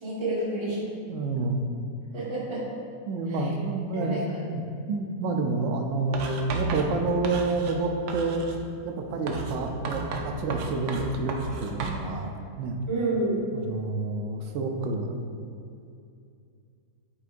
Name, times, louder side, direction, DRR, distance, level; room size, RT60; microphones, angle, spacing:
voice 1, 0.0-0.8 2.1-2.6 3.3-3.5 3.9-4.4 12.9-13.4, right 2 dB, 20° right, -7 dB, 1.3 m, -29 dB
voice 2, 1.1-1.6 3.1-4.6 4.9-8.5 8.8-12.3 12.6-12.8 13.5-15.3, right 3 dB, 65° right, 4 dB, 0.8 m, -28 dB
Writing, 6.1-7.8 8.1-8.6 9.3-12.0, right 4 dB, 90° right, 1.2 m, -34 dB
9.8 x 4.0 x 2.5 m, 2.4 s
omnidirectional pair, 1.7 m